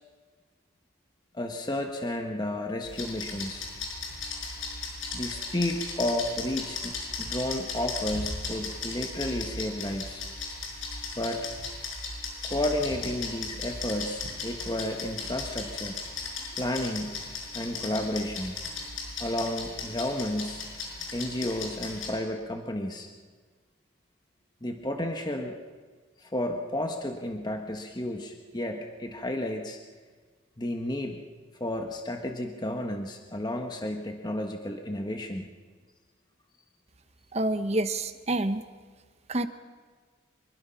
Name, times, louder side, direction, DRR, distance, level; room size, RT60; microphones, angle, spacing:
voice 1, 1.3-3.7 5.1-10.3 11.2-11.5 12.4-16.0 16.5-17.2 17.5-18.6 19.2-20.6 21.1-23.1 24.6-25.6 26.2-29.8 30.6-31.2 31.5-35.5, left 1 dB, 20° left, 4 dB, 1.2 m, -32 dB
sound 1, 2.8-22.1, left 3 dB, 85° left, 6.1 m, -37 dB
voice 2, 37.3-38.6 39.3-39.5, right 1 dB, 35° right, 10 dB, 1.0 m, -27 dB
25.0 x 22.5 x 5.7 m, 1.5 s
head